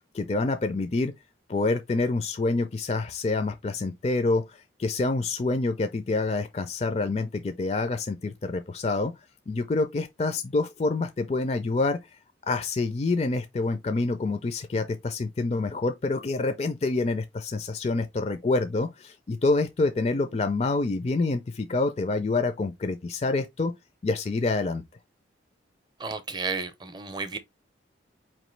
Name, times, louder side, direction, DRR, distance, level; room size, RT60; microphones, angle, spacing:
voice 1, 0.1-1.1 1.5-9.1 9.5-12.0 12.5-23.7 24.0-24.8, left 3 dB, 35° left, 0.4 m, -27 dB
voice 2, 26.0-27.4, right 4 dB, 20° right, 0.5 m, -32 dB
4.4 x 3.0 x 3.1 m
head